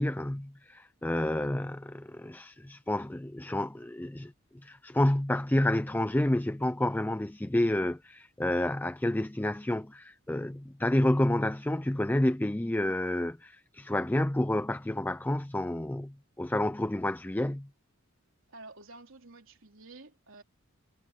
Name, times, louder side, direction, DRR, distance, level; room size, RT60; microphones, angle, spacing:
voice 1, 0.0-4.3 4.6-17.7, left 1 dB, 10° left, 0.5 m, -29 dB
voice 2, 1.2-1.5 18.5-20.4, right 2 dB, 65° right, 3.8 m, -51 dB
head